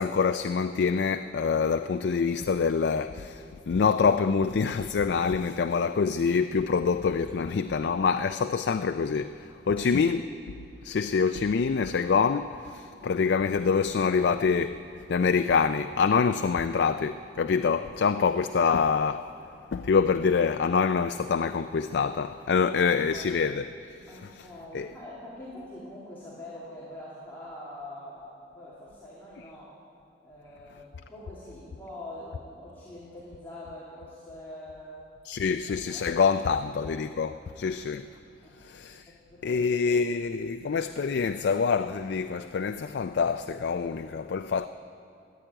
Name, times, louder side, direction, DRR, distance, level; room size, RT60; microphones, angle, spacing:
voice 1, 0.0-10.6 10.8-14.8 15.1-19.2 19.7-23.7 24.0-24.5 24.7-24.9 35.3-38.1 38.6-39.1 39.4-44.7, left 5 dB, 75° left, 0.4 m, -26 dB
voice 2, 22.6-23.3 24.1-29.7 30.2-35.0 35.4-35.5 35.9-36.2 36.5-36.7 37.3-37.4 38.4-38.5 38.9-39.6 39.9-40.0, left 1 dB, 10° left, 2.7 m, -44 dB
15.0 x 10.5 x 8.8 m
head